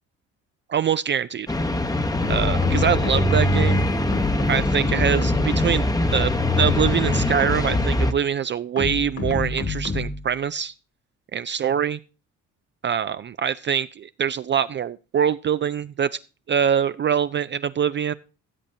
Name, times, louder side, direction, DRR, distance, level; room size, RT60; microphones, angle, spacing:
voice 1, 0.7-1.5 2.3-3.9 4.5-5.8 6.1-10.7 11.3-12.0 12.8-16.2 16.5-18.1, right 8 dB, 40° right, 14 dB, 0.4 m, -24 dB
sound 1, 1.5-8.1, left 1 dB, 10° left, 0.9 m, -22 dB
sound 2, 2.2-3.7 4.1-5.9 6.4-8.1 8.8-10.3, left 4 dB, 50° left, 2.0 m, -28 dB
16.0 x 7.3 x 2.7 m, 0.33 s
cardioid pair, 90°, 30 cm